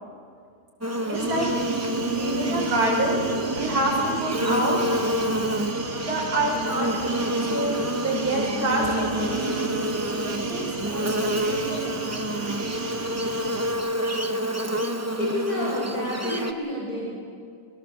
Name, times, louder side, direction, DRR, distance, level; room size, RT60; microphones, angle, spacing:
Buzz, 0.8-16.5, equal, 20° right, 0.4 m, -28 dB
voice 1, 1.0-1.5 2.1-4.8 5.2-5.3 6.0-9.4 10.2-12.0, right 1 dB, 50° right, -3 dB, 6.3 m, -27 dB
sound 1, 1.1-13.7, right 4 dB, 80° right, 2.9 m, -33 dB
voice 2, 15.2-17.1, left 1 dB, 50° left, -4 dB, 5.7 m, -30 dB
22.0 x 20.5 x 7.9 m, 2.3 s
omnidirectional pair, 2.0 m